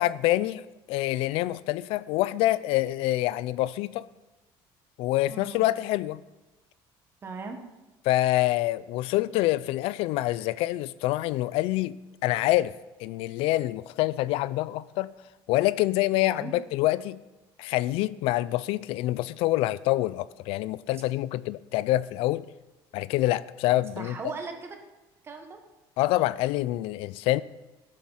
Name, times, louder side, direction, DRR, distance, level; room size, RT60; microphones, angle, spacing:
voice 1, 0.0-4.1 5.0-6.2 8.0-12.7 13.0-15.1 15.5-17.2 17.6-22.5 22.9-24.3 26.0-27.4, left 16 dB, 80° left, 0.4 m, -26 dB
voice 2, 5.3-5.7 7.2-7.6 16.2-16.5 24.0-24.8 25.2-25.6, right 4 dB, 25° right, 1.4 m, -38 dB
13.5 x 7.8 x 5.6 m
cardioid pair, 170°, 9 cm